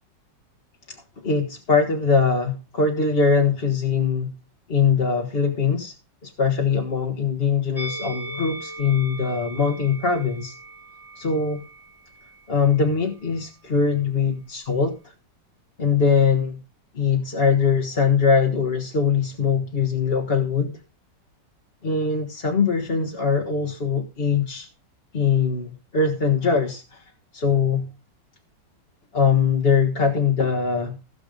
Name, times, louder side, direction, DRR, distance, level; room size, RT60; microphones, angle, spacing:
voice 1, 1.2-4.3 4.7-5.9 6.2-10.5 11.1-11.6 12.5-15.1 15.8-16.6 16.9-20.8 21.8-24.7 25.1-27.0 27.3-27.9 29.1-31.0, left 5 dB, 35° left, 1.5 m, -22 dB
Musical instrument, 7.8-13.0 13.3-13.5, right 1 dB, 15° right, 2.0 m, -39 dB
16.5 x 7.1 x 5.1 m
omnidirectional pair, 1.9 m